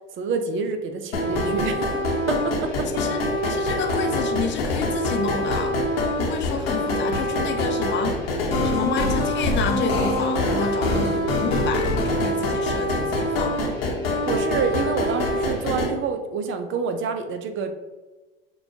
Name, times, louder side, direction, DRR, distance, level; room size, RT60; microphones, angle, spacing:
voice 1, 0.2-1.9 2.3-3.1 10.5-10.7 14.0-17.7, right 5 dB, 40° right, 7 dB, 0.6 m, -28 dB
sound 1, 1.1-15.9, left 1 dB, 85° left, 1.0 m, -24 dB
voice 2, 2.9-5.8 6.2-8.2 8.6-13.8, left 5 dB, 40° left, 4 dB, 0.8 m, -29 dB
6.8 x 2.3 x 2.7 m, 1.2 s
hypercardioid pair, 75°, 29 cm